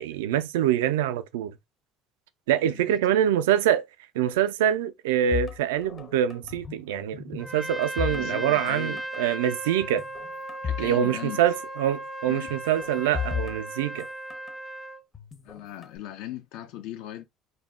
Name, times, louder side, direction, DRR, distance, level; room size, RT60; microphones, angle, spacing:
voice 1, 0.0-1.5 2.5-3.8 4.2-10.0 10.8-14.1, right 10 dB, 90° right, 0.3 m, -25 dB
voice 2, 2.7-3.1 8.1-9.0 10.6-11.4 12.3-12.6 15.4-17.2, left 13 dB, 75° left, 0.5 m, -38 dB
sound 1, 5.3-6.9 7.1-8.7 9.0-9.2 9.8-10.9 11.2-11.3 12.5-14.6 15.1-16.0, left 8 dB, 40° left, 0.7 m, -35 dB
Trumpet, 7.4-15.0, right 1 dB, 5° right, 0.3 m, -36 dB
2.2 x 2.1 x 3.5 m
supercardioid pair, 85°, 0 cm